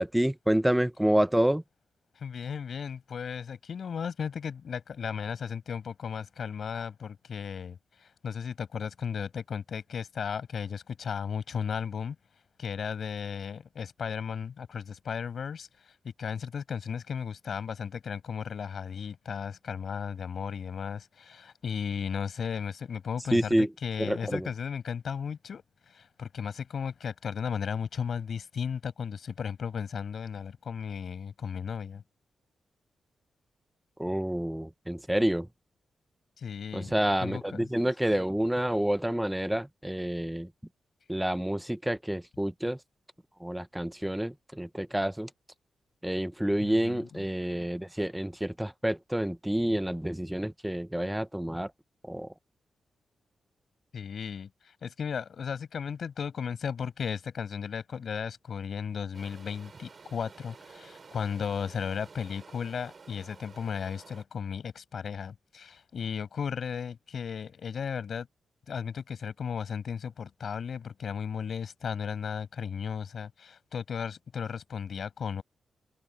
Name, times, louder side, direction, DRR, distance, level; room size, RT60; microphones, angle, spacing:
voice 1, 0.0-1.6 23.3-23.7 24.0-24.5 34.0-35.5 36.7-40.5 41.1-42.8 43.4-45.3 46.0-51.7 52.1-52.3, right 1 dB, 5° right, 0.8 m, -28 dB
voice 2, 2.2-12.2 12.6-15.7 16.2-32.0 36.4-36.9 37.2-37.7 46.6-47.2 53.9-54.5 54.8-68.3 68.7-75.4, left 7 dB, 60° left, 6.1 m, -35 dB
sound 1, 59.1-64.2, right 4 dB, 40° right, 6.8 m, -51 dB
wide cardioid pair, 130°, 0 cm